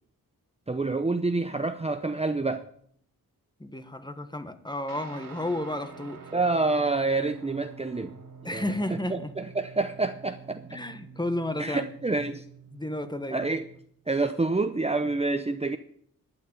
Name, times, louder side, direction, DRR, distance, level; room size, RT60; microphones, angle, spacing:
voice 1, 0.7-2.7 6.3-8.1 8.4-8.7 9.1-10.6 11.6-12.4 13.3-13.6 14.1-15.8, right 3 dB, 20° right, 8 dB, 0.8 m, -27 dB
voice 2, 3.6-6.2 8.4-9.3 10.7-11.9 12.7-13.4, left 1 dB, 10° left, 10 dB, 1.3 m, -32 dB
Guitar, 4.9-13.8, right 5 dB, 75° right, 3.1 m, -47 dB
12.0 x 8.5 x 8.9 m, 0.63 s
cardioid pair, 80°, 35 cm